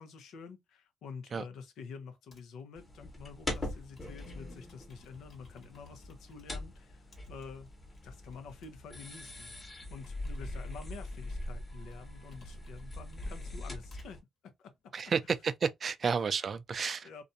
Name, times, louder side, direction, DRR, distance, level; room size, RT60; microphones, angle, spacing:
voice 1, 0.0-7.7 8.0-14.7 17.0-17.2, left 5 dB, 80° left, 0.7 m, -48 dB
Computer keyboard, 2.3-2.6 3.4-6.6 7.1-14.1 14.7-15.3, left 4 dB, 55° left, 1.2 m, -60 dB
sound 1, 2.8-14.2, left 1 dB, 25° left, 1.1 m, -42 dB
voice 2, 14.9-17.1, right 6 dB, 45° right, 0.4 m, -31 dB
2.5 x 2.2 x 2.6 m
cardioid pair, 90°, 0 cm